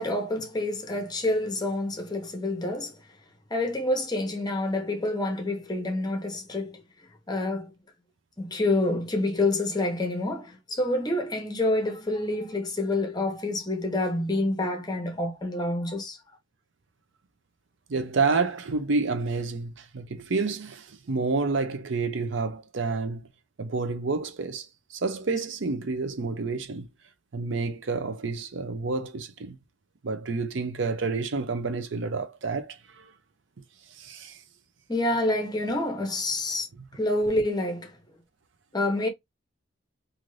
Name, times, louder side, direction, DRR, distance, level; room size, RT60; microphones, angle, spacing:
voice 1, 0.0-3.0 3.5-6.8 7.3-7.7 8.4-16.2 34.9-36.7 36.9-37.9 38.7-39.1, left 2 dB, 20° left, 0.7 m, -27 dB
voice 2, 17.9-23.2 23.6-24.6 25.0-26.9 27.3-29.6 30.0-32.7 34.0-34.3, right 4 dB, 70° right, 0.5 m, -29 dB
2.6 x 2.6 x 3.1 m
head